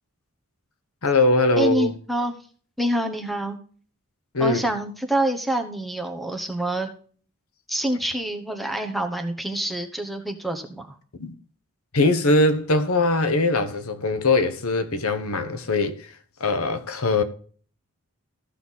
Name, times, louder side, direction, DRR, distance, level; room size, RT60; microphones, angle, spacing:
voice 1, 1.0-1.9 4.3-4.6 11.2-11.3 11.9-16.1 16.4-17.2, left 2 dB, 75° left, 1.1 m, -21 dB
voice 2, 1.6-2.3 2.8-3.6 4.4-6.9 7.7-10.9, right 1 dB, ahead, 1.1 m, -26 dB
14.5 x 5.7 x 4.1 m
head